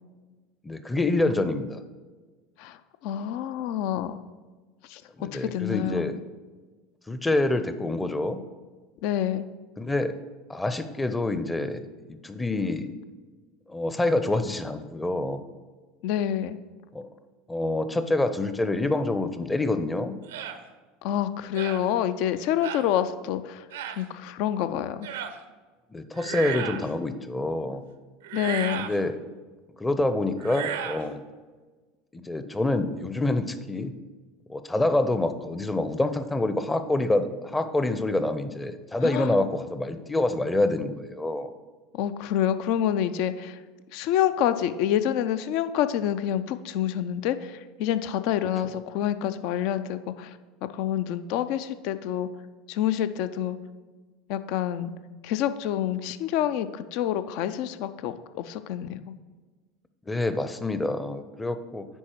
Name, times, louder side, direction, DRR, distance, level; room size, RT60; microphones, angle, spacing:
voice 1, 0.6-1.8 5.2-6.2 7.1-8.4 9.8-10.2 10.5-12.9 13.7-15.4 16.9-17.1 17.5-20.2 25.9-27.8 28.8-29.2 29.8-31.3 32.1-33.9 34.5-41.5 60.1-61.9, left 2 dB, 10° left, 10 dB, 0.6 m, -27 dB
voice 2, 3.0-4.2 4.9-5.0 5.3-6.2 9.0-9.5 16.0-16.6 21.0-23.6 24.0-25.1 28.3-28.9 39.0-39.3 41.9-43.6 43.9-52.3 52.7-53.6 54.3-54.9 55.2-59.1, left 10 dB, 60° left, 12 dB, 0.4 m, -27 dB
sound 1, 20.3-20.6 21.5-21.8 22.6-22.9 23.7-24.0 25.0-25.4 26.1-26.9 28.2-29.0 30.4-31.0, right 9 dB, 70° right, 0.5 m, -34 dB
10.0 x 4.2 x 4.5 m, 1.3 s
figure-of-eight pair, 75°, 0 cm